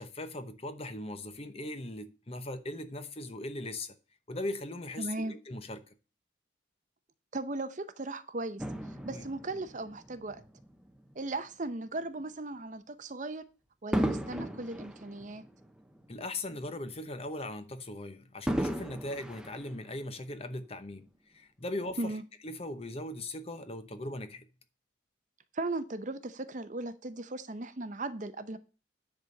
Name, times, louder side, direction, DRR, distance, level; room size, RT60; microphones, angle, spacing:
voice 1, 0.0-3.9 4.3-5.8 9.1-9.3 16.1-22.1 22.4-24.5, left 1 dB, 30° left, 0.9 m, -39 dB
voice 2, 5.0-5.3 7.3-8.6 9.0-10.4 11.1-13.4 13.8-15.4 22.0-22.2 25.5-28.6, right 2 dB, 40° right, 0.7 m, -37 dB
Fireworks, 8.6-11.2 11.8-12.0 13.9-16.4 16.8-16.9 18.5-20.3 21.1-21.2, right 1 dB, 5° right, 0.7 m, -36 dB
10.0 x 4.3 x 7.6 m
head